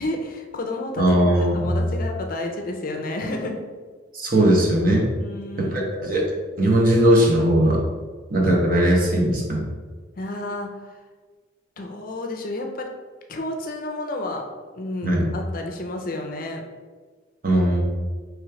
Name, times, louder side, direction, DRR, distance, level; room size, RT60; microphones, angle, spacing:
voice 1, 0.0-1.2 1.5-3.6 5.1-5.9 10.2-10.9 11.8-12.9 13.3-14.5 14.8-16.6, left 2 dB, 45° left, 2 dB, 0.5 m, -31 dB
voice 2, 1.0-1.8 4.1-5.1 5.6-6.3 6.6-7.8 8.3-9.7 15.0-15.2 17.4-17.8, right 1 dB, 45° right, -2 dB, 0.9 m, -19 dB
3.2 x 3.1 x 4.8 m, 1.4 s
head